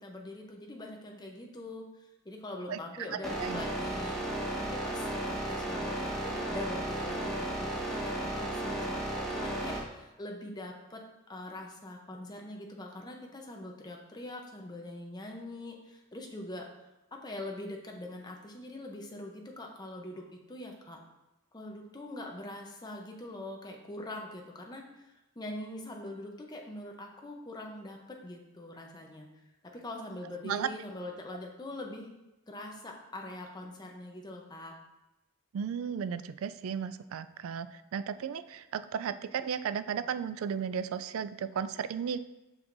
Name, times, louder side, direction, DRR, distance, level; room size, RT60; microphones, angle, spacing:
voice 1, 0.0-11.0 11.3-16.7 17.1-20.2 20.5-21.0 21.5-25.1 25.4-29.3 29.7-32.1 32.5-34.7, left 1 dB, 20° left, 1 dB, 0.7 m, -43 dB
sound 1, 3.2-9.8, right 1 dB, ahead, 1.1 m, -34 dB
voice 2, 35.5-37.7 37.9-42.2, right 7 dB, 70° right, 13 dB, 0.3 m, -34 dB
6.2 x 6.0 x 2.6 m, 0.98 s
head